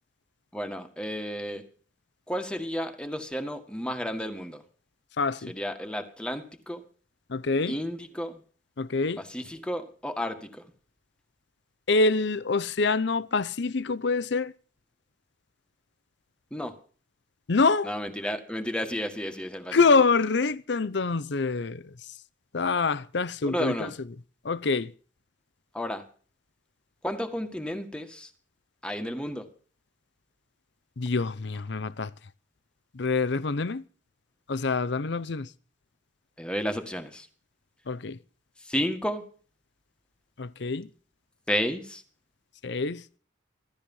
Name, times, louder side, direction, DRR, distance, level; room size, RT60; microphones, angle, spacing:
voice 1, 0.5-1.6 2.3-4.6 5.5-6.8 7.7-8.4 9.2-10.6 16.5-16.7 17.8-19.8 23.4-23.9 25.7-26.0 27.0-28.3 28.8-29.4 36.4-37.3 38.7-39.2 41.5-42.0, equal, 5° left, 1.7 m, -32 dB
voice 2, 5.2-5.5 7.3-7.8 8.8-9.2 11.9-14.5 17.5-17.9 19.7-21.8 22.5-23.9 24.4-24.9 31.0-32.1 32.9-33.8 34.5-35.5 37.9-38.2 40.4-40.9 42.6-43.0, left 4 dB, 65° left, 0.7 m, -25 dB
17.0 x 13.5 x 5.5 m
head